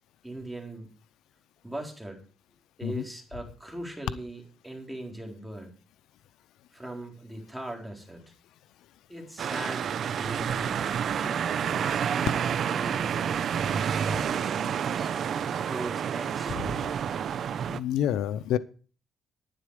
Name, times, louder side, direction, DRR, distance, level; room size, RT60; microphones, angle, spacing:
voice 1, 0.2-0.9 1.6-2.2 2.8-5.7 6.7-8.3 9.1-16.6, right 1 dB, 5° right, 0 dB, 4.2 m, -41 dB
sound 1, 9.4-17.8, right 8 dB, 60° right, 0.7 m, -29 dB
voice 2, 17.7-18.6, left 10 dB, 85° left, 14 dB, 0.6 m, -28 dB
11.5 x 9.8 x 4.8 m, 0.39 s
cardioid pair, 90°, 0 cm